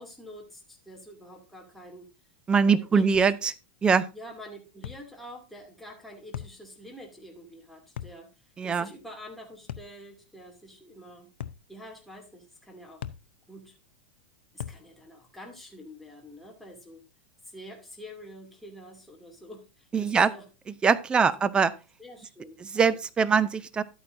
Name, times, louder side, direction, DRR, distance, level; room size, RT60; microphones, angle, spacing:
voice 1, 0.0-2.1 2.6-3.3 4.1-8.3 8.6-11.3 11.7-13.0 13.5-13.8 14.5-17.0 17.4-20.4 21.2-21.3 22.0-22.9, equal, ahead, -1 dB, 2.5 m, -47 dB
voice 2, 2.5-3.5 3.8-4.1 8.6-8.9 19.9-20.3 20.8-21.7 22.6-23.8, right 5 dB, 15° right, 17 dB, 0.5 m, -22 dB
sound 1, 3.1-3.4 4.8-5.1 6.3-6.6 8.0-8.2 9.7-10.0 11.4-11.7 13.0-13.3 14.6-14.9, left 10 dB, 85° left, 0.6 m, -38 dB
12.0 x 8.7 x 2.6 m, 0.30 s
supercardioid pair, 140°, 6 cm